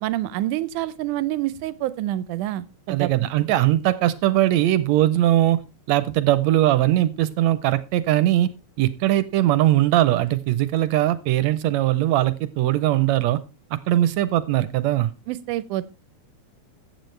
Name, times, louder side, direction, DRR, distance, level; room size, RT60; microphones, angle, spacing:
voice 1, 0.0-3.1 15.3-15.9, right 14 dB, 90° right, 16 dB, 2.2 m, -27 dB
voice 2, 2.9-5.6 5.9-8.5 8.8-13.4 13.7-15.1, right 14 dB, 75° right, 14 dB, 1.8 m, -20 dB
14.5 x 8.8 x 3.2 m, 0.29 s
omnidirectional pair, 3.5 m